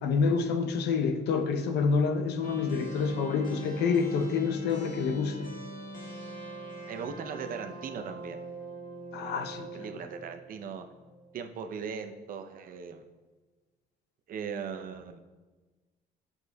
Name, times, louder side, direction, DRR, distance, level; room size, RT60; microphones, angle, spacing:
voice 1, 0.0-5.5 9.1-9.9, left 5 dB, 75° left, 0.8 m, -28 dB
sound 1, 2.4-11.7, right 1 dB, 50° left, 1.8 m, -43 dB
voice 2, 6.9-8.5 9.7-10.8 11.3-13.1 14.3-15.2, right 6 dB, 55° right, 0.7 m, -39 dB
10.5 x 8.1 x 2.3 m
cardioid pair, 110°, 17 cm